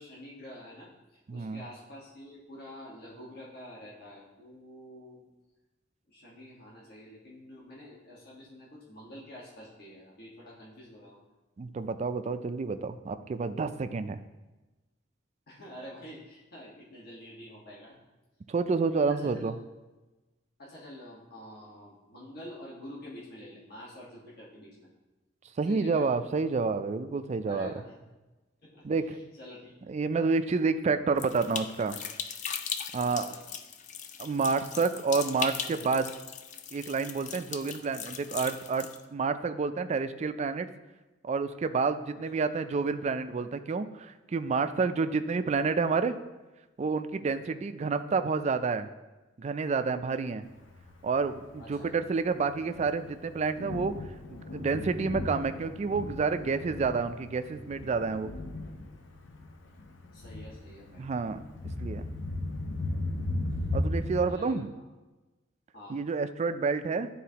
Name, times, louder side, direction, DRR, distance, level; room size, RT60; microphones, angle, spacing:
voice 1, 0.0-5.2 6.1-11.2 15.5-18.0 19.1-19.4 20.6-24.9 25.6-26.1 27.5-28.1 28.6-29.7 33.0-33.5 37.6-37.8 42.3-42.4 51.6-51.9 60.1-61.1 64.3-64.8 65.7-66.0, equal, 55° left, -6 dB, 1.4 m, -48 dB
voice 2, 1.3-1.6 11.6-14.2 18.5-19.6 25.6-27.7 28.8-29.2 29.9-32.0 32.9-33.3 34.2-36.1 36.7-40.7 41.2-46.2 46.8-48.9 49.4-50.4 51.0-53.9 54.3-58.3 61.0-61.4 61.8-62.0 63.7-64.7 65.9-67.1, right 4 dB, 35° right, 10 dB, 0.3 m, -29 dB
sound 1, 31.2-39.0, left 7 dB, 40° left, 0.4 m, -39 dB
Thunder, 50.6-64.3, left 2 dB, 80° left, 0.7 m, -37 dB
11.0 x 3.9 x 2.8 m, 1.1 s
head